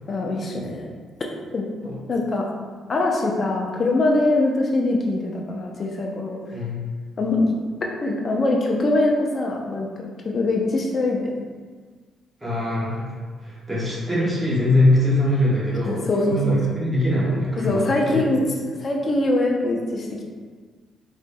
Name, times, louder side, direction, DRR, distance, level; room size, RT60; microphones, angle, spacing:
voice 1, 0.1-0.9 1.5-1.7 2.1-2.5 2.9-6.4 7.2-7.5 8.0-11.3 15.8-16.6 17.6-18.4 18.8-20.2, left 2 dB, 40° left, 0 dB, 0.6 m, -23 dB
voice 2, 12.4-18.4, left 1 dB, 10° right, -7 dB, 1.4 m, -22 dB
3.9 x 3.3 x 2.2 m, 1.5 s
cardioid pair, 90°, 0 cm